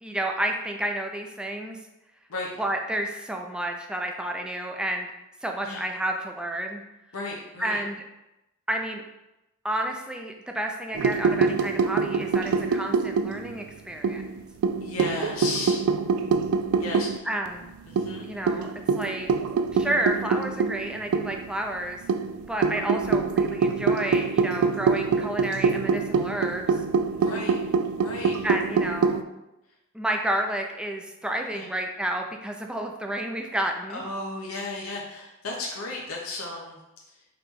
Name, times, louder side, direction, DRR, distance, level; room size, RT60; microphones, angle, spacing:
voice 1, 0.0-1.8 2.6-5.1 5.4-6.8 7.6-8.0 8.7-9.0 9.6-14.2 17.2-17.7 18.2-19.3 19.7-22.0 22.5-26.8 28.4-29.3 29.9-34.0, right 1 dB, 5° right, 2 dB, 0.4 m, -30 dB
voice 2, 2.3-2.6 5.6-5.8 7.1-7.8 14.8-15.8 16.8-17.3 17.9-18.3 27.2-27.7 28.0-28.4 31.5-31.7 33.9-36.8 37.1-37.2, left 2 dB, 75° left, -2 dB, 0.7 m, -34 dB
sound 1, 10.9-13.6 14.0-17.2 17.5-17.6 18.0-21.5 22.1-29.2, right 5 dB, 75° right, 0.3 m, -25 dB
4.8 x 3.0 x 3.6 m, 0.95 s
head